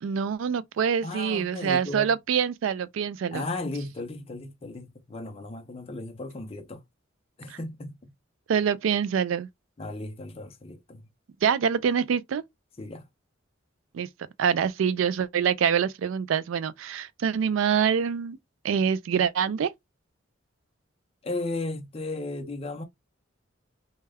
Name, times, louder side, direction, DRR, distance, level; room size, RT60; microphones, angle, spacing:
voice 1, 0.0-3.4 7.5-7.6 8.5-9.5 11.4-12.4 13.9-14.1 14.4-18.4 18.6-19.7, right 7 dB, 80° right, 0.3 m, -25 dB
voice 2, 1.0-2.2 3.3-6.8 7.4-8.1 9.8-11.0 12.8-13.1 21.2-22.8, left 2 dB, 30° left, 0.5 m, -35 dB
2.2 x 2.1 x 3.4 m
head